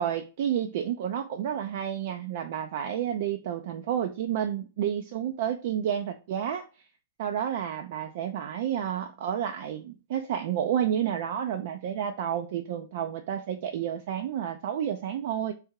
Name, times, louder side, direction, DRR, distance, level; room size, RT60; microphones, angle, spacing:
voice 1, 0.0-6.6 7.2-15.5, right 9 dB, 55° right, 6 dB, 0.4 m, -30 dB
3.6 x 3.3 x 4.5 m, 0.32 s
figure-of-eight pair, 105°, 0 cm